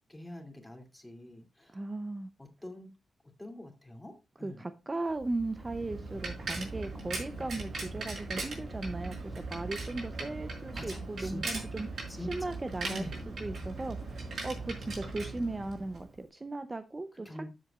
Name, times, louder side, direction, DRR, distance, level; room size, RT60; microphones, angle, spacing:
voice 1, 0.1-1.8 2.4-2.9 3.4-4.6 10.4-11.6 12.1-12.5 12.8-13.2 17.2-17.5, left 1 dB, 10° left, 2.7 m, -45 dB
voice 2, 1.7-2.3 4.4-17.5, right 2 dB, 25° right, 0.6 m, -37 dB
Bicycle, 5.2-16.1, right 3 dB, 65° right, 5.6 m, -39 dB
13.5 x 7.8 x 2.4 m
cardioid pair, 100°, 0 cm